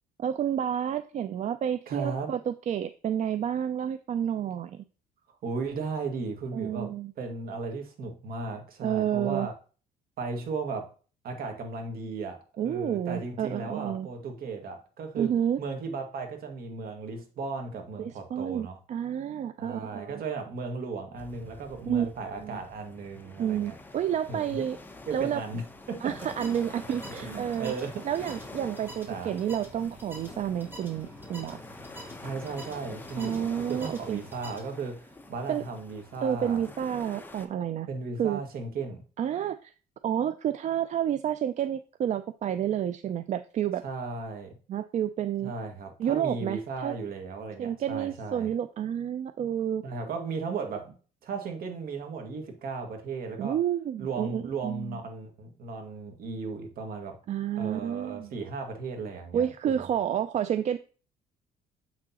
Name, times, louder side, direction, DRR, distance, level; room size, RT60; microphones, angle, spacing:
voice 1, 0.2-4.8 6.5-7.1 8.8-9.5 12.6-14.1 15.2-15.6 18.0-20.2 21.9-22.6 23.4-24.8 25.1-25.4 26.0-27.7 28.0-31.6 33.2-34.2 35.5-35.6 36.2-37.9 38.2-38.4 39.2-39.7 40.0-43.8 44.7-45.5 46.0-47.0 47.6-49.8 53.4-55.0 57.3-58.3 59.3-60.8, right 9 dB, 45° right, 11 dB, 0.4 m, -30 dB
voice 2, 1.9-2.3 5.4-9.5 10.2-10.9 11.2-15.3 15.6-18.8 19.6-23.7 24.3-24.7 25.1-26.2 26.9-28.0 29.1-29.3 32.2-36.6 37.9-39.0 43.8-44.5 45.4-48.5 49.8-50.9 51.2-53.6 54.0-57.2 57.6-59.8, right 4 dB, 60° right, 3 dB, 1.9 m, -36 dB
sound 1, 21.1-37.5, left 2 dB, 10° left, 0.9 m, -46 dB
sound 2, 26.0-34.6, equal, 10° right, 2.8 m, -47 dB
7.4 x 6.1 x 2.9 m, 0.37 s
cardioid pair, 110°, 17 cm